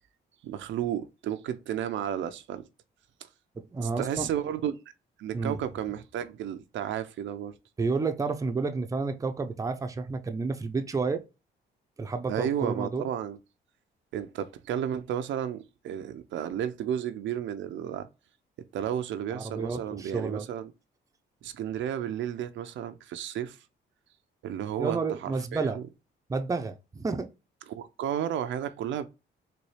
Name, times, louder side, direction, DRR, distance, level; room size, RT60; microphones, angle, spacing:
voice 1, 0.4-2.7 3.8-4.8 5.2-7.6 12.3-13.4 14.1-18.1 18.7-20.7 21.4-23.6 24.4-25.8 27.7-29.1, right 10 dB, 70° right, 0.5 m, -32 dB
voice 2, 3.7-4.3 5.3-5.6 7.8-11.2 12.0-13.1 19.3-20.5 24.8-25.8 26.3-27.3, right 4 dB, 15° right, 0.5 m, -30 dB
4.1 x 2.2 x 3.2 m
cardioid pair, 90°, 20 cm